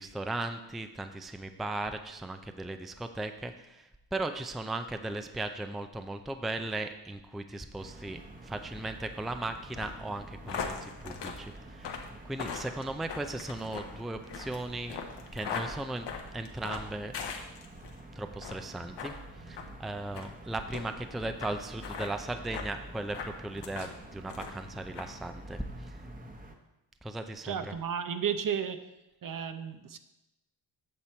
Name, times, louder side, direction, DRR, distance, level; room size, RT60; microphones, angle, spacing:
voice 1, 0.0-15.0 15.3-16.1 16.3-17.1 18.2-19.1 19.5-26.0 27.0-27.7, right 2 dB, ahead, 8 dB, 0.5 m, -37 dB
sound 1, 7.8-26.5, right 1 dB, 20° right, 1.1 m, -48 dB
sound 2, 9.7-18.0 18.4-18.7 19.0-19.2 19.5-19.7 20.1-20.3 20.7-20.8 21.4-21.5 21.8-22.1 22.5-22.7 23.1-23.9 24.3-24.7 25.0-25.1, left 6 dB, 70° left, 1.3 m, -39 dB
voice 2, 27.4-28.9 29.2-30.0, right 8 dB, 50° right, 10 dB, 0.8 m, -33 dB
8.7 x 6.8 x 4.5 m, 0.95 s
cardioid pair, 80°, 44 cm